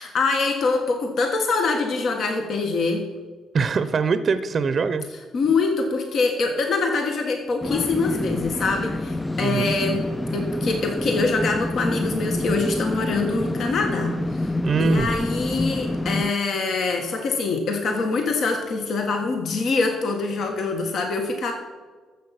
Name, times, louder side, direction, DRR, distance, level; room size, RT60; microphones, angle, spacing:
voice 1, 0.0-3.0 5.3-10.1 10.3-14.4 14.8-21.5, left 3 dB, 65° left, 3 dB, 1.6 m, -24 dB
voice 2, 3.5-5.1 9.4-9.7 10.3-10.4 14.6-15.1, right 5 dB, 45° right, 12 dB, 0.6 m, -23 dB
sound 1, 7.6-16.3, left 1 dB, 10° left, 0.3 m, -27 dB
13.5 x 7.2 x 5.9 m, 1.4 s
cardioid pair, 90°, 0 cm